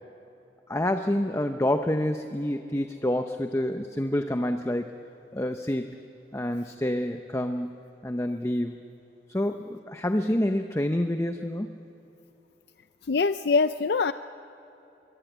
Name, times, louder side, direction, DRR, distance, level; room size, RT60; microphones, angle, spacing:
voice 1, 0.7-4.9 5.3-5.9 6.3-8.8 9.3-11.7, left 1 dB, 15° left, 6 dB, 0.8 m, -28 dB
voice 2, 13.1-14.1, left 4 dB, 65° left, 11 dB, 0.5 m, -23 dB
24.5 x 23.5 x 9.1 m, 3.0 s
head